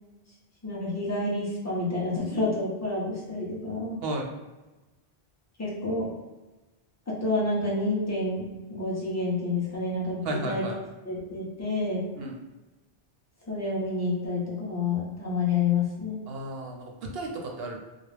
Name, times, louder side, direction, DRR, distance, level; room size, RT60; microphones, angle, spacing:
voice 1, 0.6-4.0 5.6-6.1 7.1-10.6 11.0-12.1 13.5-16.2, left 3 dB, 20° left, -6 dB, 0.7 m, -29 dB
voice 2, 10.2-10.8 12.2-12.4 16.3-17.8, right 2 dB, 75° right, 1 dB, 0.8 m, -33 dB
2.4 x 2.0 x 3.2 m, 1.1 s
omnidirectional pair, 1.1 m